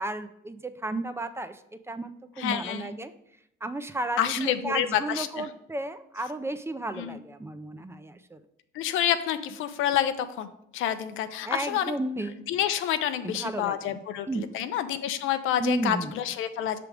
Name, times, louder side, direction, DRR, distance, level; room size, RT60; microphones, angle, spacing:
voice 1, 0.0-1.6 1.9-2.1 2.4-3.1 3.6-8.4 11.4-12.4 13.2-14.0 14.3-14.4 15.6-16.1, right 2 dB, 15° right, 10 dB, 0.4 m, -33 dB
voice 2, 2.4-2.9 4.2-5.5 7.0-7.2 8.7-11.9 12.5-16.8, left 10 dB, 90° left, 10 dB, 0.5 m, -28 dB
5.8 x 3.4 x 4.9 m, 0.77 s
cardioid pair, 90°, 20 cm